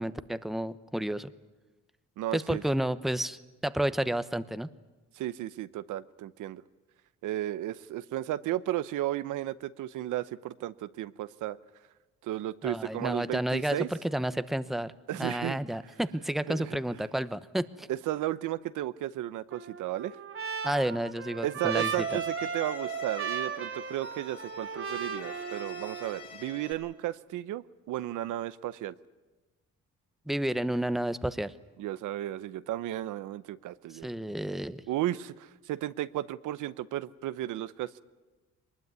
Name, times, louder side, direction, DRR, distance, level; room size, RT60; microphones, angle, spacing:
voice 1, 0.0-1.3 2.3-4.7 12.6-14.9 15.2-17.9 20.6-22.2 30.3-31.5 34.0-34.8, right 1 dB, ahead, 13 dB, 0.9 m, -31 dB
voice 2, 2.2-2.6 5.1-6.6 7.2-11.6 12.2-13.9 15.1-15.6 16.5-16.8 17.9-20.2 21.4-28.9 31.8-34.1 34.9-38.0, right 14 dB, 85° right, 15 dB, 0.8 m, -34 dB
Trumpet, 19.5-26.2, right 6 dB, 45° right, 2.6 m, -36 dB
Bowed string instrument, 21.7-26.7, left 6 dB, 80° left, 5.8 m, -47 dB
22.5 x 20.0 x 9.6 m, 1.2 s
cardioid pair, 90°, 30 cm